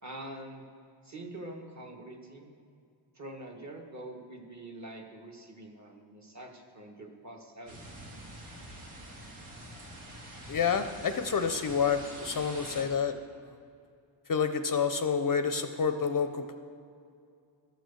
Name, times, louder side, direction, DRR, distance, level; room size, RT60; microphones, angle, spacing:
voice 1, 0.0-0.6 1.0-2.5 3.1-7.8, right 1 dB, 35° right, 1 dB, 1.3 m, -45 dB
sound 1, 7.7-12.8, right 1 dB, 90° right, 2.1 m, -46 dB
voice 2, 10.5-13.1 14.3-16.5, left 6 dB, 45° left, 8 dB, 0.5 m, -28 dB
12.0 x 6.2 x 6.8 m, 2.4 s
wide cardioid pair, 125°, 49 cm